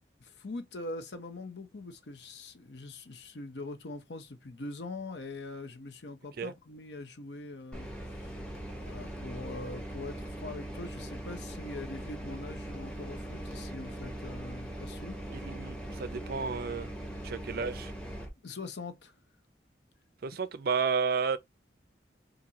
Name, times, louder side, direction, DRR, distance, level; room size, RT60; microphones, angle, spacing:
voice 1, 0.2-8.4 8.7-15.4 18.4-19.1, left 2 dB, 70° left, 0.7 m, -43 dB
sound 1, 7.7-18.3, right 1 dB, 5° left, 0.8 m, -40 dB
voice 2, 15.3-16.9 17.2-17.9 20.2-21.4, right 5 dB, 55° right, 0.4 m, -32 dB
4.0 x 2.6 x 2.9 m
head